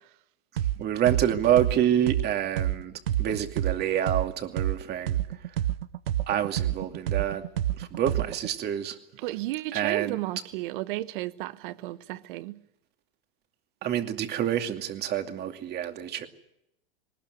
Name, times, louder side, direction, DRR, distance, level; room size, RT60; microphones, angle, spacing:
sound 1, 0.6-0.7 1.1-4.7 5.1-8.5, right 12 dB, 85° right, 0.9 m, -27 dB
voice 1, 0.8-2.9 3.2-5.2 6.3-7.4 7.8-9.0 9.7-10.2 13.8-16.3, right 10 dB, 35° right, 2.5 m, -27 dB
voice 2, 9.2-12.6, right 17 dB, 60° right, 1.3 m, -33 dB
20.0 x 19.5 x 9.6 m
hypercardioid pair, 115°, 29 cm